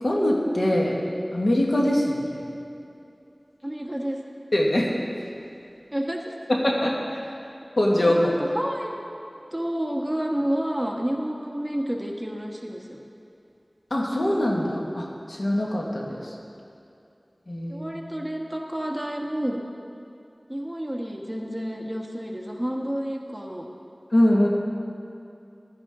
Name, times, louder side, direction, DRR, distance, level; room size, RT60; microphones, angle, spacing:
voice 1, 0.0-0.9 1.3-2.4 4.5-4.9 6.5-7.0 7.8-8.3 13.9-16.2 17.5-18.1 24.1-24.5, left 1 dB, 80° left, -3 dB, 1.8 m, -22 dB
voice 2, 3.6-4.2 5.9-6.3 8.1-8.9 9.5-13.0 17.7-19.6 20.5-23.7, equal, 10° right, 0 dB, 1.4 m, -30 dB
15.5 x 11.5 x 3.8 m, 2.7 s
wide cardioid pair, 50°, 0 cm